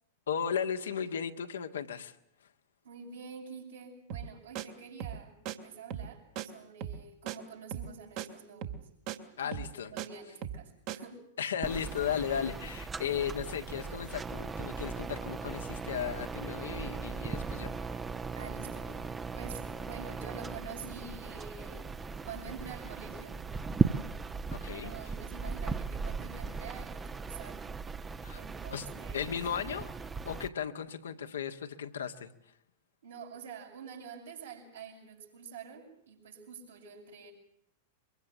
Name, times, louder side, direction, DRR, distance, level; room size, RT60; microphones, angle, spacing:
voice 1, 0.3-2.1 9.4-9.9 11.4-17.7 24.5-24.9 28.2-28.4 28.7-28.9 29.1-29.9 30.2-32.3, left 8 dB, 70° left, 6 dB, 1.7 m, -35 dB
voice 2, 2.8-8.9 9.4-9.6 9.9-11.3 18.3-22.0 22.2-23.4 24.7-27.7 28.3-29.3 33.0-37.3, right 6 dB, 75° right, -4 dB, 7.0 m, -47 dB
sound 1, 4.1-4.3 4.5-4.7 5.0-5.2 5.4-5.6 5.9-6.1 6.4-6.5 6.8-7.0 7.3-7.4 7.7-7.9 8.2-8.3 8.6-8.8 9.1-9.2 9.5-10.1 10.4-10.6 10.9-11.0, right 10 dB, 50° right, 2.2 m, -38 dB
sound 2, 11.6-30.5, right 5 dB, 15° right, 1.1 m, -37 dB
23.5 x 23.5 x 7.5 m, 0.73 s
figure-of-eight pair, 95°, 0 cm